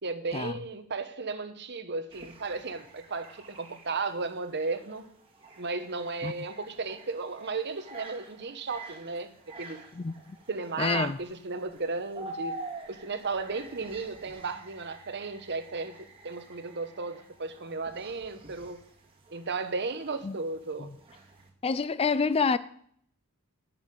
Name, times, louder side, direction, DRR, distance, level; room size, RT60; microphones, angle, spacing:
voice 1, 0.0-5.1 5.6-9.3 9.6-9.8 10.5-12.6 12.9-16.0 16.2-18.8 19.3-20.9, right 4 dB, 50° right, 1.1 m, -34 dB
sound 1, 2.1-21.5, right 2 dB, 25° right, 2.0 m, -48 dB
voice 2, 10.0-10.4 10.8-11.2 20.2-20.4 20.8-20.9 21.6-22.6, left 5 dB, 25° left, 0.4 m, -27 dB
11.0 x 5.8 x 8.6 m
head